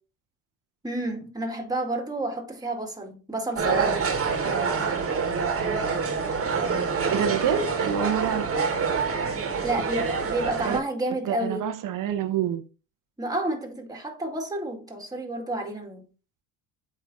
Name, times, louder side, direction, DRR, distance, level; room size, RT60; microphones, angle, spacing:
voice 1, 0.8-4.0 9.6-11.7 13.2-16.1, right 1 dB, 10° right, 1.9 m, -30 dB
sound 1, 3.5-10.8, right 5 dB, 35° right, 1.7 m, -26 dB
voice 2, 7.1-8.5 9.8-9.9 10.6-10.8 11.2-12.6, right 8 dB, 60° right, 1.1 m, -27 dB
8.5 x 3.3 x 4.0 m
supercardioid pair, 90°, 37 cm